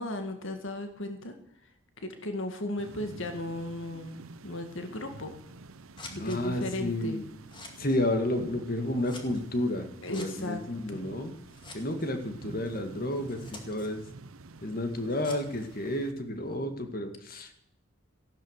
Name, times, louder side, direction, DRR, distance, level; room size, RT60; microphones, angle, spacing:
voice 1, 0.0-1.3 2.0-5.4 6.1-7.2 10.0-10.6 10.9-11.0, left 1 dB, 65° left, 6 dB, 2.0 m, -36 dB
sound 1, 2.8-16.1, right 3 dB, 80° right, 0.9 m, -48 dB
Scissors, 5.2-16.6, left 3 dB, 20° left, 2.1 m, -52 dB
voice 2, 6.2-7.3 7.8-11.3 11.7-14.1 14.6-17.6, left 1 dB, 45° left, 6 dB, 2.0 m, -31 dB
14.5 x 12.0 x 6.7 m, 0.74 s
head